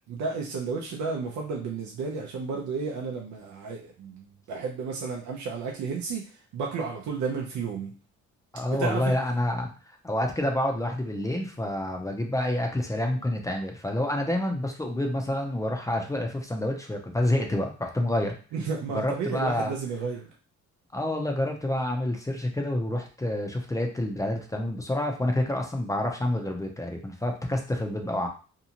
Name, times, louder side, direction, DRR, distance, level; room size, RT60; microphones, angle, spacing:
voice 1, 0.1-8.0 8.8-9.2 18.5-20.3, right 5 dB, 75° right, -1 dB, 0.6 m, -32 dB
voice 2, 8.5-18.3 18.9-19.7 20.9-28.3, left 1 dB, 10° left, 2 dB, 0.5 m, -28 dB
2.7 x 2.4 x 2.8 m, 0.36 s
cardioid pair, 90°, 30 cm